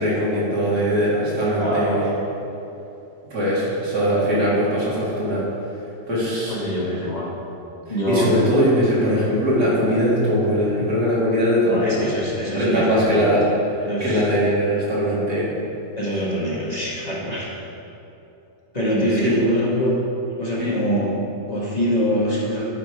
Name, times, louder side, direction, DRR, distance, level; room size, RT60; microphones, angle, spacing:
voice 1, 0.0-2.1 3.3-5.4 6.1-6.5 8.1-12.1 12.5-13.5 13.7-15.5 19.2-19.3 20.6-20.8, equal, 90° right, -8 dB, 2.9 m, -21 dB
voice 2, 1.6-2.0 6.5-7.3 7.9-8.3 11.6-13.5 13.8-14.2 16.0-17.5 18.7-20.0 20.4-22.6, equal, 25° left, -6 dB, 1.4 m, -24 dB
10.0 x 5.3 x 4.8 m, 2.8 s
omnidirectional pair, 1.7 m